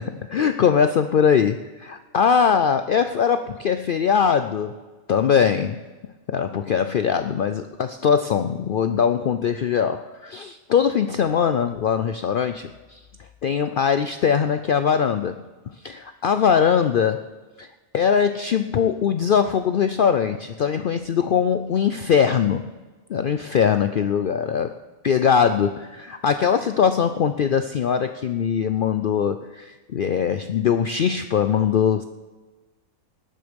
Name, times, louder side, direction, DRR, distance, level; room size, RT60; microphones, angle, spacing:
voice 1, 0.0-4.7 5.1-5.8 6.3-13.0 13.4-15.5 15.8-17.3 17.6-17.7 17.9-22.6 23.1-32.0, left 7 dB, 90° left, 10 dB, 0.4 m, -21 dB
18.5 x 10.0 x 5.2 m, 1.3 s
omnidirectional pair, 1.5 m